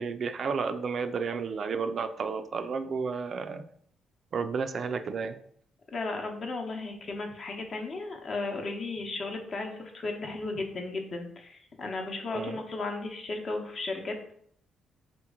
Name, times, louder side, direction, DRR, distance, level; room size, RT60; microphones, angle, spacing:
voice 1, 0.0-3.6 4.3-5.4 12.3-12.6, right 5 dB, 55° right, 9 dB, 0.3 m, -32 dB
voice 2, 5.9-14.2, left 3 dB, 50° left, 3 dB, 0.8 m, -35 dB
4.0 x 3.0 x 3.5 m, 0.65 s
cardioid pair, 90°, 0 cm